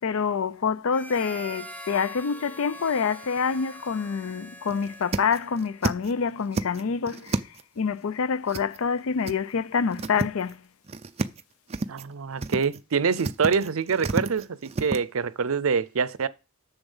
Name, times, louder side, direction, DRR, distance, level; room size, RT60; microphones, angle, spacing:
voice 1, 0.0-7.4 7.8-10.6, left 6 dB, 75° left, 0.5 m, -27 dB
Harmonica, 0.9-5.9, right 1 dB, 5° left, 0.9 m, -43 dB
sound 1, 3.0-3.4 3.8-3.9 4.3-4.4 4.7-6.1 6.4-7.8 8.5-9.0 9.2-9.3 9.7-10.5 10.8-11.4 11.7-12.1 12.4-12.8 13.1-15.0, right 3 dB, 30° right, 0.5 m, -30 dB
voice 2, 11.9-16.3, right 5 dB, 75° right, 0.6 m, -25 dB
7.1 x 6.9 x 5.5 m
head